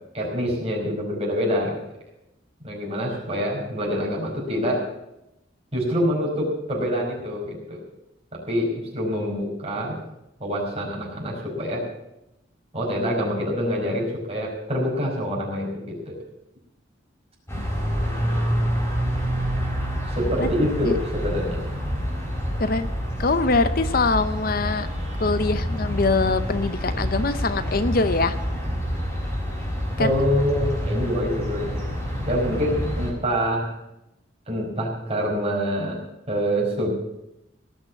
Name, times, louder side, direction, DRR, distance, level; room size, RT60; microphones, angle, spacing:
voice 1, 0.1-1.8 2.6-4.9 5.7-7.8 8.5-10.0 10.4-11.8 12.7-16.1 20.0-21.6 30.0-31.9 32.3-33.7 34.5-36.0 36.3-36.9, equal, 30° right, -3 dB, 5.0 m, -26 dB
sound 1, 17.5-33.1, equal, 15° left, 4.2 m, -27 dB
voice 2, 22.6-22.9 23.2-24.9 25.2-28.4 30.0-30.1, left 3 dB, 50° left, 12 dB, 0.6 m, -23 dB
18.0 x 6.5 x 9.0 m, 0.89 s
head